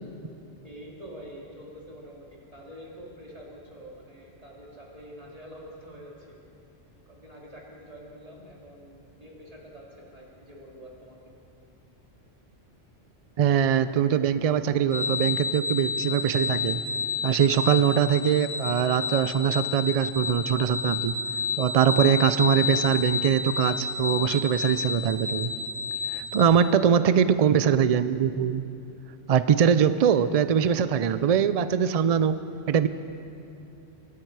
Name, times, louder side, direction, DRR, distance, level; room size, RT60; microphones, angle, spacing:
voice 1, 0.6-6.4 7.1-11.2 26.8-27.2, equal, 30° right, -3 dB, 2.9 m, -46 dB
voice 2, 13.4-16.8 17.2-21.2 21.6-25.5 26.1-28.6 29.3-32.4 32.7-32.9, right 8 dB, 80° right, 13 dB, 0.3 m, -22 dB
sound 1, 14.9-26.4, left 5 dB, 10° right, 1.5 m, -30 dB
24.0 x 12.0 x 4.7 m, 2.6 s
omnidirectional pair, 1.2 m